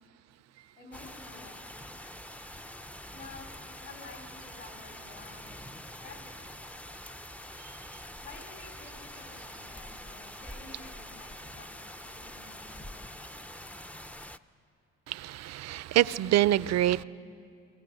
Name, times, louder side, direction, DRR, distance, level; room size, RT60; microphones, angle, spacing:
voice 1, 0.8-2.0 3.1-6.9 8.2-13.8, left 3 dB, 60° left, 2.9 m, -51 dB
sound 1, 0.9-14.4, left 1 dB, 5° left, 0.4 m, -45 dB
voice 2, 15.1-17.0, right 13 dB, 60° right, 0.4 m, -26 dB
23.0 x 19.5 x 6.4 m
cardioid pair, 90°, 30 cm